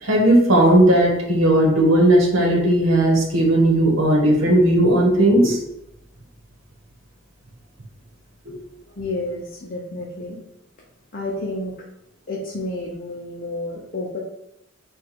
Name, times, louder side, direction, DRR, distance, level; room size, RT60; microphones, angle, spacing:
voice 1, 0.0-5.6, right 1 dB, 85° right, -2 dB, 1.1 m, -16 dB
voice 2, 9.0-10.4 11.1-11.7 12.3-14.2, left 2 dB, 45° left, -3 dB, 0.7 m, -30 dB
3.9 x 2.5 x 4.6 m, 0.79 s
head